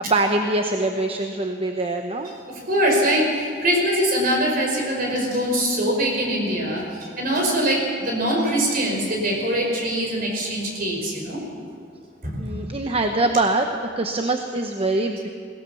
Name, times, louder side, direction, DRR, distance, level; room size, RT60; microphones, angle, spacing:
voice 1, 0.1-2.3 12.4-13.7 14.0-15.3, right 2 dB, 30° right, 5 dB, 1.0 m, -23 dB
voice 2, 2.5-11.4 12.2-12.4, right 1 dB, 55° right, 0 dB, 5.4 m, -23 dB
21.5 x 18.0 x 7.1 m, 2.3 s
head